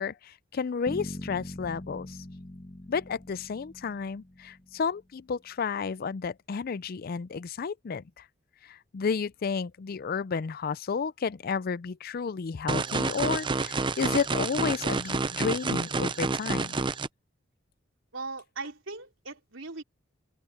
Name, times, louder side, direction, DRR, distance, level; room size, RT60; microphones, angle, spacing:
voice 1, 0.0-2.2 2.9-8.0 8.7-16.7, left 5 dB, 50° left, 0.4 m, -32 dB
Bass guitar, 0.9-4.9, left 1 dB, 30° left, 1.4 m, -42 dB
sound 1, 12.7-17.1, right 3 dB, 25° right, 0.5 m, -29 dB
voice 2, 18.1-19.8, right 3 dB, 75° right, 3.9 m, -39 dB
head